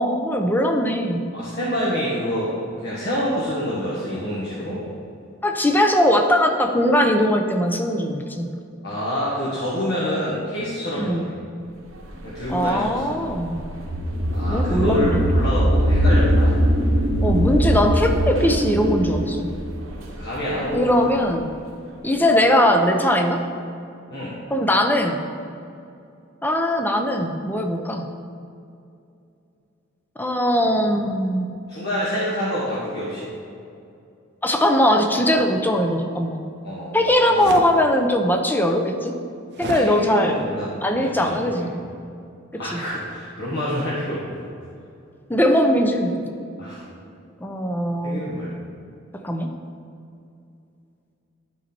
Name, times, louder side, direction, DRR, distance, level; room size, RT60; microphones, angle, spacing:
voice 1, 0.0-1.3 5.4-8.5 11.0-11.3 12.5-13.6 14.5-15.2 17.2-19.5 20.7-21.5 22.0-23.5 24.5-25.2 26.4-28.1 30.2-31.5 34.4-36.4 36.9-39.2 39.6-40.3 40.8-41.8 42.7-42.8 45.3-46.2 47.4-48.2 49.2-49.5, equal, 10° left, 4 dB, 0.6 m, -20 dB
voice 2, 1.3-4.8 8.8-11.3 12.2-13.0 14.3-16.6 20.0-20.9 22.1-22.2 24.1-24.3 31.7-33.3 36.6-37.0 37.2-37.5 39.6-41.6 42.6-44.4 46.6-46.8 48.0-48.6, equal, 55° left, -9 dB, 1.5 m, -27 dB
sound 1, 12.1-21.0, equal, 85° right, 1.1 m, -21 dB
sound 2, 37.4-37.7 39.6-39.9, right 4 dB, 55° right, 0.5 m, -31 dB
12.0 x 4.1 x 4.4 m, 2.5 s
head